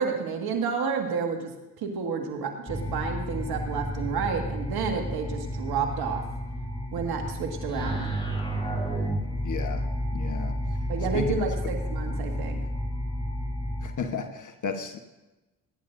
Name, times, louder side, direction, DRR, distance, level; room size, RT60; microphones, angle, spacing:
voice 1, 0.0-1.5 1.8-6.2 6.9-8.1 10.9-12.6, right 5 dB, 80° right, 3 dB, 1.8 m, -30 dB
sound 1, 2.7-13.9, equal, 15° left, 4.6 m, -31 dB
voice 2, 9.4-10.6 11.1-11.5 13.8-15.0, left 6 dB, 55° left, 7 dB, 1.2 m, -34 dB
23.0 x 10.5 x 2.6 m, 1.0 s
supercardioid pair, 45°, 37 cm